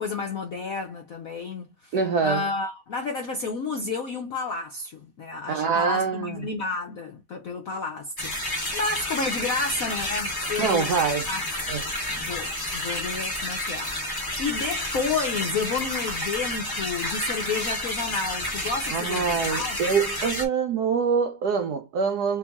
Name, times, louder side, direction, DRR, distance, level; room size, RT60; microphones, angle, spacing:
voice 1, 0.0-2.0 2.2-11.0 11.3-11.4 12.2-19.8, left 4 dB, 70° left, 0.8 m, -31 dB
voice 2, 1.9-2.4 5.5-6.4 10.6-11.3 11.7-11.8 18.9-22.4, right 6 dB, 75° right, 0.9 m, -25 dB
sound 1, 8.2-20.4, left 1 dB, 20° left, 0.5 m, -30 dB
3.2 x 3.0 x 3.5 m
omnidirectional pair, 2.4 m